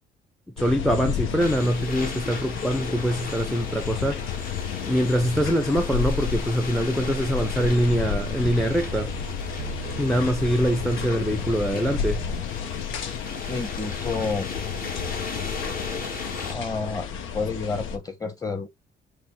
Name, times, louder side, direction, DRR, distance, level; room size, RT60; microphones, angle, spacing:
sound 1, 0.6-18.0, left 7 dB, 90° left, 0.7 m, -32 dB
voice 1, 0.6-4.5 4.9-9.1 9.9-12.2, equal, ahead, 0.5 m, -24 dB
sound 2, 1.4-16.5, left 4 dB, 45° left, 1.3 m, -37 dB
sound 3, 7.9-12.4, right 14 dB, 90° right, 0.4 m, -38 dB
voice 2, 13.4-14.5 16.5-17.1 17.3-18.7, left 4 dB, 20° left, 1.1 m, -29 dB
5.9 x 2.1 x 3.0 m
cardioid pair, 90°, 20 cm